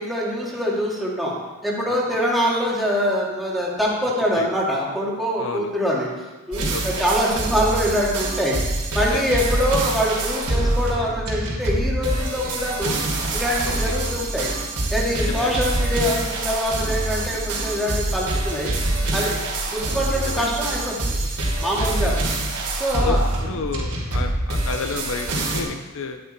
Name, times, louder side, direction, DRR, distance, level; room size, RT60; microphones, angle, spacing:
voice 1, 0.0-1.3 1.6-6.1 6.5-8.6 8.9-13.0 13.3-14.5 14.9-18.7 19.1-19.4 19.6-21.2 21.6-22.2 22.8-23.2, equal, ahead, -5 dB, 2.5 m, -24 dB
voice 2, 5.4-5.7 6.7-7.0 9.1-9.2 13.6-14.0 15.1-15.5 20.1-20.5 21.8-22.1 23.1-26.2, left 4 dB, 65° left, 7 dB, 0.7 m, -31 dB
sound 1, 6.5-25.6, right 2 dB, 85° right, 3.4 m, -25 dB
11.5 x 9.6 x 4.5 m, 1.2 s
head